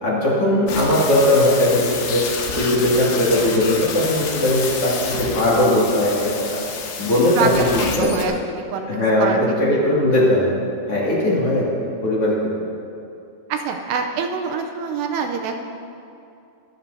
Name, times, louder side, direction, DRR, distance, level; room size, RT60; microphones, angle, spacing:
voice 1, 0.0-2.2 2.5-6.6 7.0-8.1 8.9-10.5 10.9-12.3, left 1 dB, 40° left, -7 dB, 2.7 m, -19 dB
sound 1, 0.7-8.3, left 5 dB, 75° left, 3.7 m, -29 dB
voice 2, 7.0-8.3 8.7-9.4 13.5-15.6, right 6 dB, 85° right, 4 dB, 2.7 m, -25 dB
23.5 x 12.0 x 2.8 m, 2.7 s
omnidirectional pair, 5.2 m